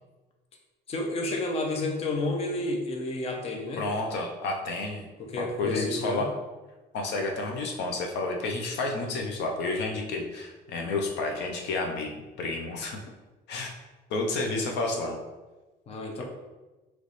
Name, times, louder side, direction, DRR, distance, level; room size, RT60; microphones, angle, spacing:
voice 1, 0.9-3.8 5.2-6.3 15.9-16.2, left 2 dB, 35° left, 1 dB, 0.7 m, -31 dB
voice 2, 3.8-5.0 5.4-6.3 6.9-12.1 12.4-13.0 13.5-13.7 14.1-15.2 16.2-16.3, left 2 dB, 70° left, 2 dB, 0.7 m, -30 dB
3.2 x 3.1 x 4.0 m, 1.2 s
cardioid pair, 135°, 19 cm